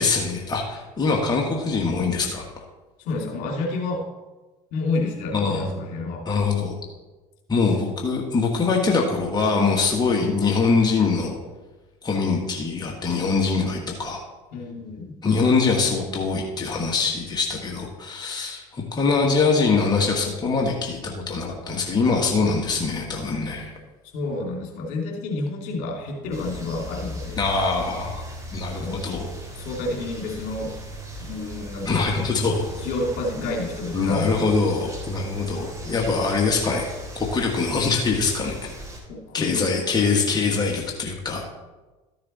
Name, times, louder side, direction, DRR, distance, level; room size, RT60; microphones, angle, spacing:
voice 1, 0.0-2.4 5.3-5.8 6.2-6.7 7.5-11.4 12.0-14.2 15.2-23.7 27.4-28.2 28.5-29.3 31.8-32.7 33.9-36.9 37.1-38.7 39.3-41.4, left 4 dB, 25° left, 0 dB, 1.7 m, -23 dB
voice 2, 3.0-4.1 4.7-6.2 14.5-15.4 24.1-27.4 28.7-29.0 29.5-30.7 31.2-32.3 32.8-34.5 36.0-36.2 39.1-39.7, left 2 dB, 65° left, 0 dB, 2.6 m, -30 dB
sound 1, 26.3-39.0, equal, 20° right, 3.4 m, -38 dB
13.0 x 6.7 x 4.2 m, 1.2 s
supercardioid pair, 85°, 15 cm